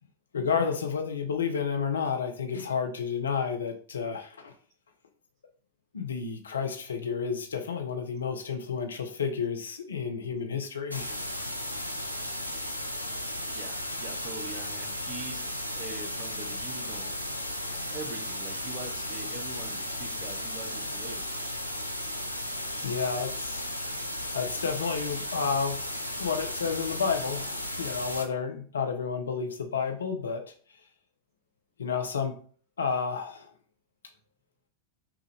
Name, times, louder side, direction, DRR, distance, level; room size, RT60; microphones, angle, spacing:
voice 1, 0.3-4.5 5.9-11.1 22.8-23.7 24.3-25.8 26.2-30.4 31.8-32.4 32.8-33.5, left 6 dB, 70° left, 5 dB, 0.7 m, -31 dB
sound 1, 10.9-28.3, left 1 dB, 90° right, 0.6 m, -35 dB
voice 2, 13.5-17.2 17.7-21.3, right 3 dB, 35° right, 5 dB, 1.0 m, -43 dB
5.9 x 2.5 x 3.4 m, 0.43 s
figure-of-eight pair, 90°, 0 cm